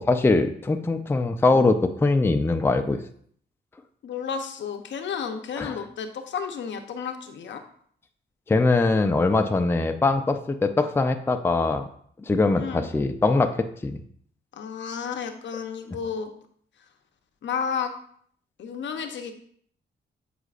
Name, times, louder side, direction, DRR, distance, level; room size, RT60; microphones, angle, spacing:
voice 1, 0.0-3.0 5.6-5.8 8.5-11.9 12.3-13.6 13.8-14.0, left 3 dB, 10° left, 6 dB, 0.4 m, -22 dB
voice 2, 4.0-7.6 12.5-12.9 14.5-16.3 17.4-17.9 18.6-19.3, left 6 dB, 70° left, 6 dB, 0.7 m, -32 dB
8.0 x 5.0 x 2.4 m, 0.62 s
cardioid pair, 95°, 20 cm